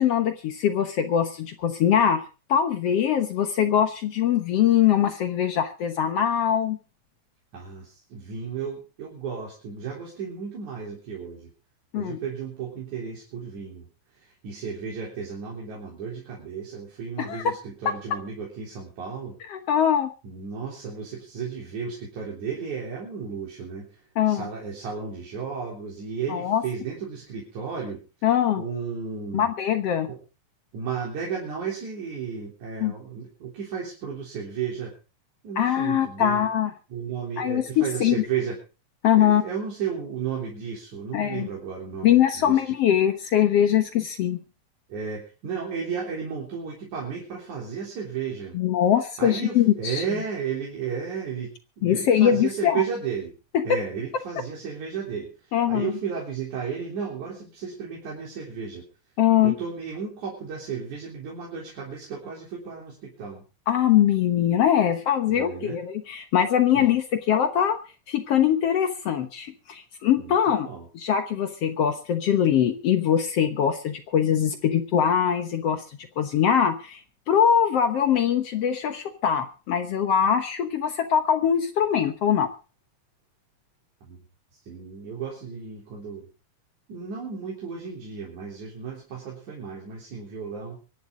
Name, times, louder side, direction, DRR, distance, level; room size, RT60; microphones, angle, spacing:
voice 1, 0.0-2.2 2.5-6.8 11.9-12.2 17.3-17.4 19.5-20.1 24.2-24.5 26.3-26.6 28.2-28.6 29.3-30.1 32.8-32.9 35.6-36.7 37.4-38.2 39.0-39.4 41.1-41.5 42.0-44.4 48.6-50.0 51.8-52.8 53.5-53.8 55.5-55.9 59.2-59.6 63.7-67.8 68.1-70.7 70.9-75.8 76.2-77.0 77.3-82.5, left 9 dB, 65° left, 8 dB, 2.0 m, -22 dB
voice 2, 7.5-11.5 12.0-19.4 20.2-28.0 28.6-29.5 30.1-30.2 30.7-34.9 35.4-36.5 36.9-38.6 39.1-42.7 44.9-48.6 49.2-53.3 53.6-58.8 59.4-63.4 65.3-65.8 66.7-66.9 70.2-70.4 70.6-70.9 84.0-84.3 84.6-86.3 86.9-90.8, right 6 dB, 85° right, -3 dB, 5.1 m, -34 dB
24.0 x 11.5 x 3.8 m, 0.34 s
omnidirectional pair, 3.3 m